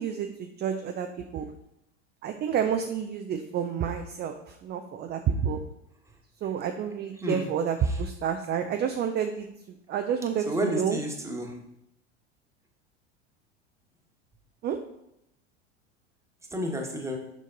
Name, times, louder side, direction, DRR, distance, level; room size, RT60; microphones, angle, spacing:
voice 1, 0.0-1.5 2.2-5.6 6.4-11.0 14.6-14.8, right 7 dB, 30° right, 5 dB, 0.5 m, -29 dB
voice 2, 7.2-7.5 7.8-8.0 10.5-11.5 16.5-17.2, equal, 10° right, 1 dB, 1.4 m, -31 dB
6.6 x 5.1 x 3.9 m, 0.81 s
hypercardioid pair, 85°, 36 cm